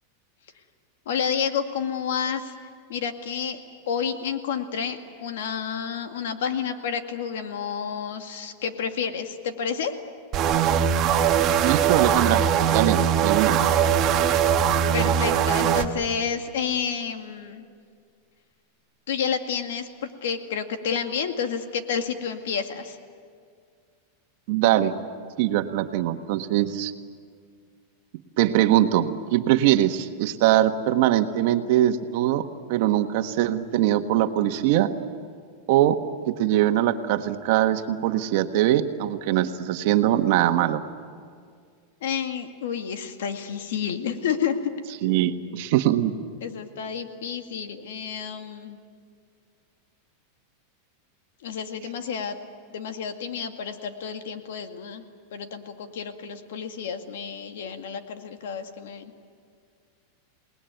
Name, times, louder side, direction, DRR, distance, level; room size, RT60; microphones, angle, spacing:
voice 1, 1.1-2.5 2.9-3.6 3.9-10.0 14.9-17.7 19.1-19.9 20.2-23.0 42.0-44.7 46.4-48.8 51.4-52.4 52.7-55.0 55.3-59.1, left 7 dB, 80° left, 7 dB, 2.1 m, -30 dB
sound 1, 10.3-15.9, right 8 dB, 30° right, 1.4 m, -21 dB
voice 2, 11.6-13.6 24.5-24.9 25.4-26.9 28.4-34.9 35.7-40.8 45.0-46.1, right 12 dB, 55° right, 7 dB, 1.4 m, -22 dB
28.5 x 19.5 x 9.3 m, 2.1 s
supercardioid pair, 150°, 0 cm